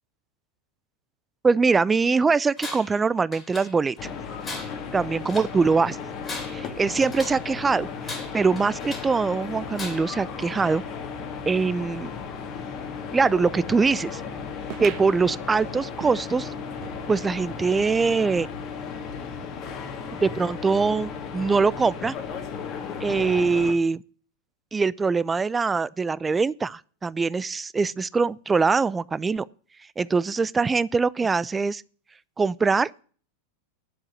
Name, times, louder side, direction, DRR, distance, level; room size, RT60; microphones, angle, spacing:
voice 1, 1.4-4.1 4.9-6.0 6.5-10.8 11.5-12.1 13.1-14.2 14.8-16.5 17.1-18.5 20.2-22.2 23.0-24.0 24.7-29.4 30.0-31.8 32.4-32.9, right 4 dB, 15° right, 0.4 m, -23 dB
Tools, 2.6-3.0 3.3-4.0 4.4-5.6 6.1-7.5 8.0-9.2 9.7-10.2, left 3 dB, 20° left, 2.9 m, -38 dB
sound 1, 4.0-23.7, left 6 dB, 35° left, 2.1 m, -35 dB
sound 2, 14.7-17.7 18.1-18.2 18.4-18.5 19.3-19.4, right 11 dB, 40° right, 1.1 m, -43 dB
10.5 x 7.4 x 7.4 m
figure-of-eight pair, 90°, 0 cm